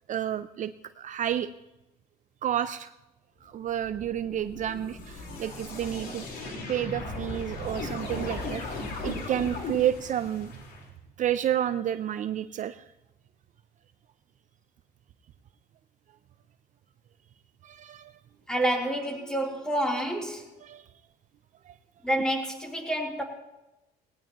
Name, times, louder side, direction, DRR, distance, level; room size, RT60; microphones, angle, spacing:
voice 1, 0.1-1.5 2.4-2.9 3.4-6.2 6.7-8.6 9.0-10.5 11.2-12.8 17.6-18.1 20.6-20.9 21.7-21.8, right 10 dB, 50° right, 12 dB, 0.5 m, -30 dB
sound 1, 3.7-10.8, left 2 dB, 80° left, 4.2 m, -37 dB
voice 2, 18.5-20.4 22.0-23.2, right 1 dB, 5° left, -1 dB, 3.3 m, -28 dB
18.5 x 18.0 x 3.0 m, 0.96 s
cardioid pair, 110°, 17 cm